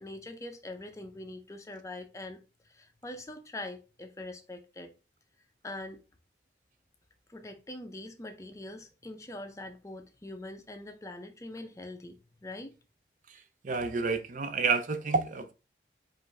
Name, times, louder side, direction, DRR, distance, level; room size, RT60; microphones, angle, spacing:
voice 1, 0.0-4.9 5.6-6.0 7.3-12.7, left 1 dB, 15° left, 0.5 m, -43 dB
voice 2, 13.6-15.5, right 4 dB, 45° right, 0.4 m, -29 dB
5.2 x 2.5 x 3.3 m
head